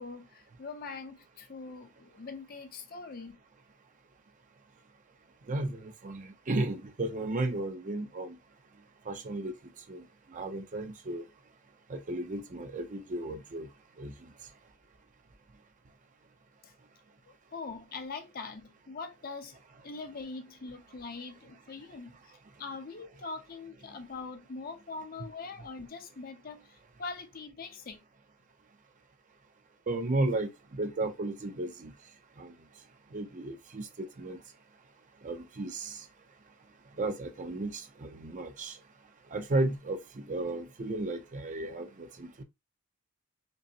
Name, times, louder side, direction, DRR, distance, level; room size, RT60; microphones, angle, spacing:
voice 1, 0.0-3.4 16.6-16.7 17.5-19.6 19.8-22.2 22.6-28.0, left 4 dB, 45° left, 0.6 m, -42 dB
voice 2, 5.5-8.4 9.1-9.5 9.9-10.0 10.3-11.3 11.9-13.7 14.0-14.1 25.2-25.3 29.9-31.9 32.4-32.5 33.1-34.4 35.2-36.0 37.0-38.8 39.3-42.4, right 2 dB, 35° right, 0.5 m, -34 dB
5.2 x 2.0 x 2.6 m
head